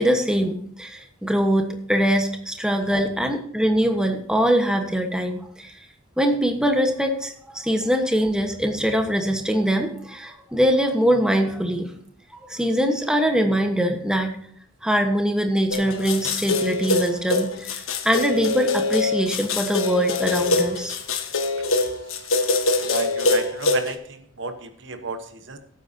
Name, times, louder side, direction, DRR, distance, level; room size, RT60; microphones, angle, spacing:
voice 1, 0.0-5.7 6.2-11.9 12.4-14.4 14.8-21.0, equal, 5° right, 4 dB, 1.3 m, -22 dB
sound 1, 15.7-23.9, left 3 dB, 90° left, 1.6 m, -24 dB
voice 2, 22.8-25.6, right 3 dB, 65° right, 8 dB, 1.2 m, -32 dB
17.5 x 9.3 x 2.8 m, 0.63 s
head